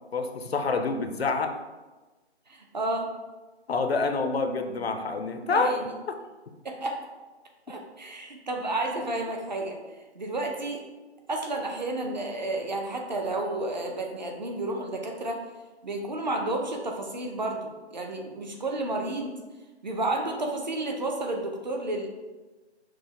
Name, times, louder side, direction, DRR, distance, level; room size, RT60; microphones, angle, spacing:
voice 1, 0.1-1.6 3.7-5.8 6.1-6.2 7.7-7.8, left 4 dB, 65° left, 7 dB, 0.4 m, -27 dB
voice 2, 2.5-3.1 5.5-5.9 6.6-7.0 7.7-9.8 10.1-10.8 11.3-15.4 15.8-19.3 19.8-22.1, right 2 dB, 40° right, 2 dB, 0.5 m, -31 dB
5.9 x 2.1 x 2.9 m, 1.2 s
figure-of-eight pair, 145°, 34 cm